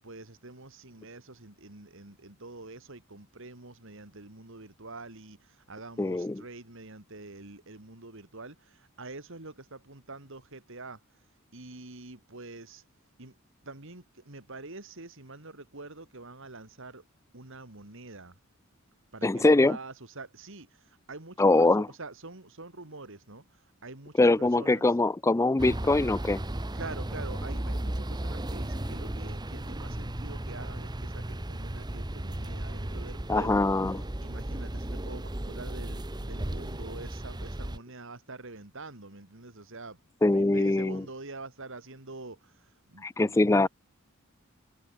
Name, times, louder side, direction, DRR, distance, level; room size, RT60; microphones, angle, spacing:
voice 1, 0.0-11.2 11.5-12.8 13.2-13.4 13.6-17.0 17.3-18.4 19.1-24.9 26.7-33.7 33.9-40.0 40.3-43.7, right 3 dB, 65° right, 2.9 m, -46 dB
voice 2, 6.0-6.4 19.2-19.8 21.4-21.9 24.2-26.4 33.3-34.0 40.2-41.0 43.0-43.7, left 2 dB, 15° left, 0.4 m, -23 dB
sound 1, 25.6-37.8, right 1 dB, 20° right, 1.1 m, -35 dB
head